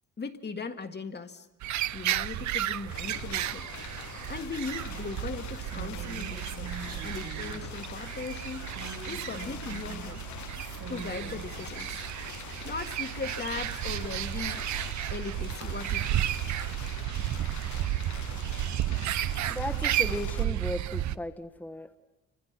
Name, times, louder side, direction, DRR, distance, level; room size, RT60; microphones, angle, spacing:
voice 1, 0.2-1.5 1.9-3.7 4.3-6.7 7.0-8.7 9.1-10.2 10.9-12.0 12.6-14.6 15.1-16.2, left 4 dB, 35° left, 6 dB, 1.8 m, -38 dB
sound 1, 1.6-21.2, right 13 dB, 70° right, 0.8 m, -33 dB
sound 2, 2.9-20.5, left 11 dB, 70° left, 0.9 m, -44 dB
Female speech woman speaking, 5.7-7.6 8.7-10.1 10.5-11.5, right 5 dB, 50° right, 2.8 m, -44 dB
voice 2, 19.5-22.0, left 1 dB, 5° left, 5 dB, 1.4 m, -36 dB
28.5 x 25.5 x 5.9 m, 1.0 s
cardioid pair, 90°, 30 cm